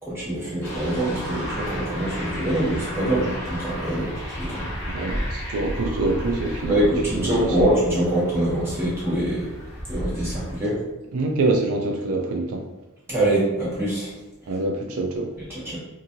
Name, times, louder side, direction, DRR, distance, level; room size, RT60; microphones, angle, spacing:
voice 1, 0.0-4.7 6.6-9.5 9.9-10.8 13.1-14.1 14.4-14.5 15.5-15.8, right 1 dB, 10° right, -9 dB, 1.3 m, -24 dB
sound 1, 0.6-10.6, equal, 15° left, 0.9 m, -32 dB
voice 2, 4.9-7.7 11.1-12.6 14.5-15.3, right 2 dB, 75° right, 2 dB, 0.4 m, -25 dB
2.9 x 2.5 x 2.6 m, 1.0 s
head